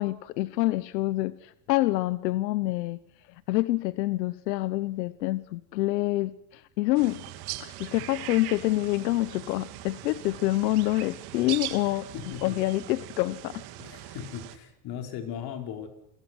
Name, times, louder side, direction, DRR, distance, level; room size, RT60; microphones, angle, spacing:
voice 1, 0.0-3.0 3.3-7.3 7.6-12.1 12.4-13.6, left 18 dB, 85° left, 16 dB, 1.0 m, -27 dB
sound 1, 6.9-14.6, right 15 dB, 50° right, 2.7 m, -40 dB
voice 2, 12.1-12.6 13.8-15.9, left 9 dB, 45° left, 5 dB, 5.2 m, -38 dB
28.5 x 23.0 x 6.2 m, 0.76 s
supercardioid pair, 140°, 49 cm